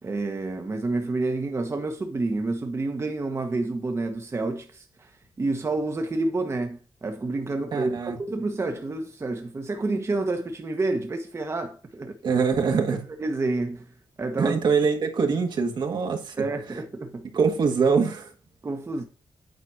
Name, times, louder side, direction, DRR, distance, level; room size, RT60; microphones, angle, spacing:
voice 1, 0.0-5.1 5.4-12.2 13.2-13.9 14.2-14.6 16.4-17.3 18.6-19.0, right 2 dB, 35° right, 1.2 m, -29 dB
voice 2, 7.7-8.2 12.2-13.0 14.4-16.5 17.3-18.3, right 5 dB, 65° right, 1.6 m, -23 dB
9.1 x 4.3 x 4.8 m
cardioid pair, 70°, 8 cm